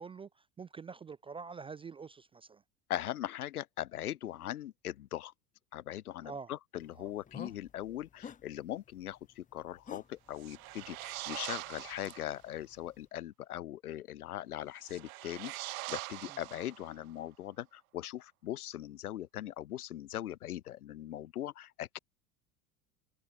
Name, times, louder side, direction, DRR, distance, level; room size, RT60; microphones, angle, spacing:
voice 1, 0.0-2.6 6.2-6.5 7.0-7.1 16.3-16.4, right 5 dB, 15° right, 0.3 m, -46 dB
voice 2, 2.9-5.3 5.7-22.0, left 12 dB, 85° left, 1.1 m, -40 dB
sound 1, 6.8-13.1, left 7 dB, 20° left, 0.7 m, -53 dB
sound 2, 10.3-12.4 14.8-17.1, right 21 dB, 70° right, 1.7 m, -43 dB
hypercardioid pair, 80°, 43 cm